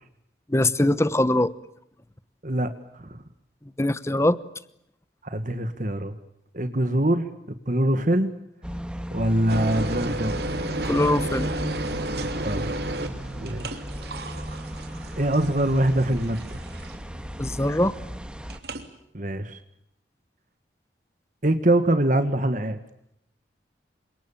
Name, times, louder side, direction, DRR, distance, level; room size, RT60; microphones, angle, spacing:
voice 1, 0.5-1.5 3.8-4.4 10.8-11.5 17.4-17.9, left 1 dB, 15° left, 15 dB, 1.0 m, -22 dB
voice 2, 5.2-6.1 6.5-7.3 7.7-8.3 9.1-10.4 12.2-12.7 13.4-13.8 15.2-16.6 19.1-19.6 21.4-22.8, right 1 dB, 45° right, 9 dB, 1.7 m, -24 dB
sound 1, 8.6-18.6, equal, 5° right, 2.0 m, -35 dB
sound 2, 9.5-17.2 18.5-18.9, right 1 dB, 60° right, 3.1 m, -32 dB
29.5 x 26.0 x 7.2 m, 0.77 s
head